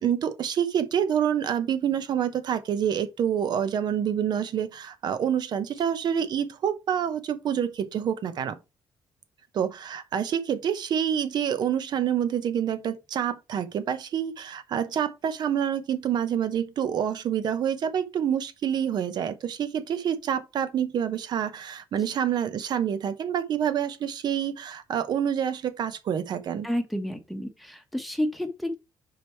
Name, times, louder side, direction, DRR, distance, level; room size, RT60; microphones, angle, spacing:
voice 1, 0.0-8.6 9.5-26.7, right 9 dB, 60° right, 1.0 m, -27 dB
voice 2, 26.6-28.8, equal, ahead, 1.1 m, -30 dB
5.1 x 4.8 x 4.5 m
cardioid pair, 135°, 8 cm